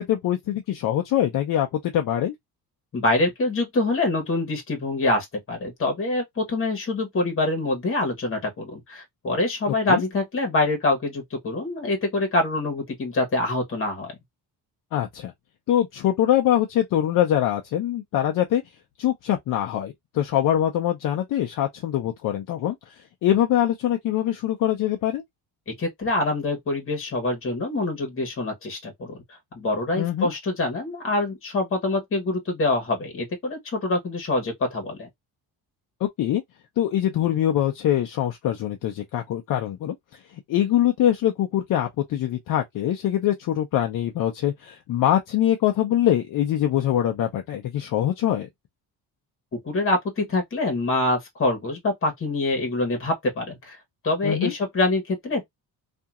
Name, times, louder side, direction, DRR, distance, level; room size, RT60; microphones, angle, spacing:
voice 1, 0.0-2.3 9.7-10.0 14.9-15.3 15.7-18.6 19.0-22.9 23.2-25.2 30.0-30.3 36.2-36.4 36.8-40.0 40.5-48.5 54.2-54.5, left 11 dB, 60° left, 0.6 m, -23 dB
voice 2, 2.9-14.1 25.7-29.2 29.5-35.1 49.5-53.8 54.0-55.4, left 2 dB, 35° left, 1.4 m, -25 dB
2.8 x 2.6 x 2.4 m
cardioid pair, 155°, 37 cm